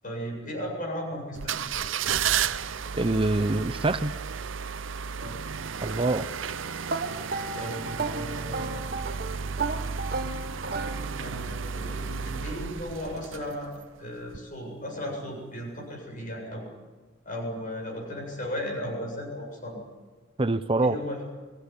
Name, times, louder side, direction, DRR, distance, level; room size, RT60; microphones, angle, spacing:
voice 1, 0.0-1.9 2.9-3.6 5.2-5.4 7.5-8.7 11.2-13.7 14.0-16.7 17.2-19.8 20.8-21.3, equal, 45° left, 1 dB, 7.8 m, -36 dB
sound 1, 1.4-13.8 14.3-14.4, right 7 dB, 75° right, 0.8 m, -33 dB
voice 2, 2.9-4.1 5.8-6.3 20.4-21.0, right 2 dB, 25° right, 12 dB, 0.7 m, -25 dB
sound 2, 6.9-11.5, right 3 dB, 50° right, 1.3 m, -34 dB
23.5 x 17.0 x 10.0 m, 1.3 s
head